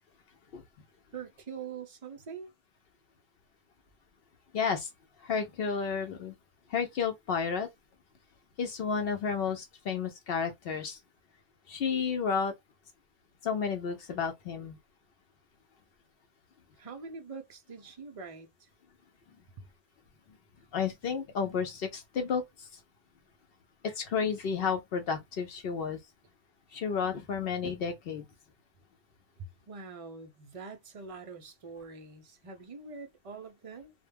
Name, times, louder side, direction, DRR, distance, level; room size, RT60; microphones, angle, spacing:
voice 1, 1.1-2.5 16.8-18.7 29.7-33.9, right 5 dB, 45° right, 0.4 m, -44 dB
voice 2, 4.5-4.9 5.2-6.3 6.7-7.7 8.6-11.0 11.7-12.5 13.4-14.8 20.7-22.7 23.8-26.0 26.7-28.2, left 6 dB, 65° left, 0.8 m, -31 dB
2.2 x 2.1 x 3.2 m
omnidirectional pair, 1.1 m